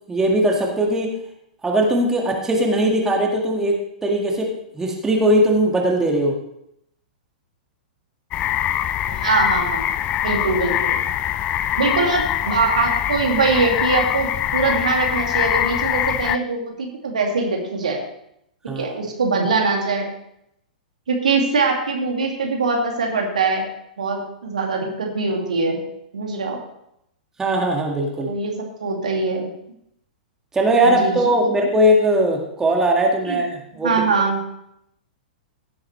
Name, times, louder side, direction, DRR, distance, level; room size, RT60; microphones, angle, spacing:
voice 1, 0.1-1.1 1.6-4.5 4.7-6.4 18.7-18.9 27.4-28.3 30.5-33.9, right 1 dB, 10° right, 0 dB, 1.8 m, -19 dB
sound 1, 8.3-16.4, left 11 dB, 25° left, 0.4 m, -23 dB
voice 2, 9.1-9.8 10.2-11.0 11.8-18.0 18.6-20.1 21.1-23.6 24.0-25.8 26.1-26.6 28.2-29.5 30.8-31.2 33.2-33.4 33.8-34.4, right 4 dB, 65° right, 1 dB, 2.2 m, -22 dB
16.0 x 8.5 x 3.2 m, 0.76 s
figure-of-eight pair, 105°, 4 cm